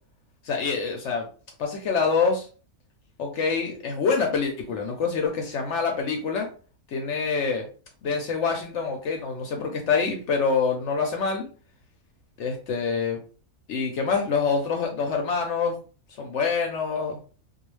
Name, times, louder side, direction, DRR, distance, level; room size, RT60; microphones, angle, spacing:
voice 1, 0.4-1.3 1.6-2.5 3.2-6.5 6.9-7.7 8.0-11.5 12.4-13.2 13.7-15.7 16.2-17.2, left 5 dB, 65° left, 2 dB, 0.7 m, -26 dB
2.3 x 2.3 x 3.1 m, 0.38 s
omnidirectional pair, 1.6 m